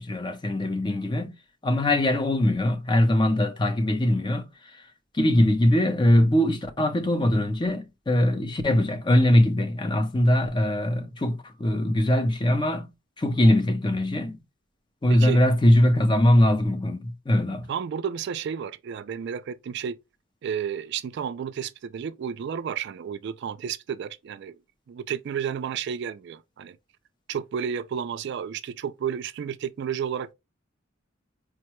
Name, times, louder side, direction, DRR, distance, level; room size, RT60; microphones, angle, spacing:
voice 1, 0.0-1.3 1.6-4.9 5.1-12.9 13.2-14.4 15.0-17.7, left 1 dB, 25° left, 0.5 m, -22 dB
voice 2, 17.7-20.0 20.4-24.6 24.9-26.8 27.3-30.3, right 8 dB, 60° right, 0.3 m, -31 dB
4.6 x 2.2 x 2.9 m
head